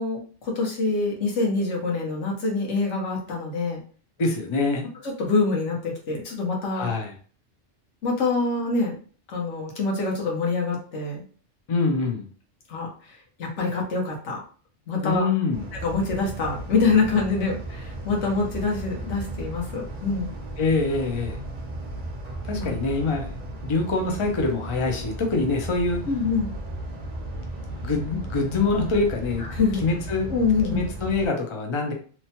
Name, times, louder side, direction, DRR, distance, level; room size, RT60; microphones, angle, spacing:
voice 1, 0.0-3.8 5.0-6.9 8.0-8.9 9.3-11.2 12.7-12.9 13.4-14.4 14.9-15.3 15.8-20.3 22.6-22.7 26.1-26.5 29.4-29.8 30.3-30.8, left 4 dB, 80° left, -1 dB, 1.2 m, -25 dB
voice 2, 4.2-4.9 6.7-7.1 11.7-12.3 15.0-15.7 20.6-21.4 22.4-23.4 23.6-26.0 27.8-29.4 29.8-30.3 30.7-31.9, left 3 dB, 50° left, 2 dB, 0.3 m, -25 dB
sound 1, 15.5-31.3, right 1 dB, 45° right, 0.6 m, -35 dB
3.0 x 2.1 x 2.8 m, 0.41 s
omnidirectional pair, 1.2 m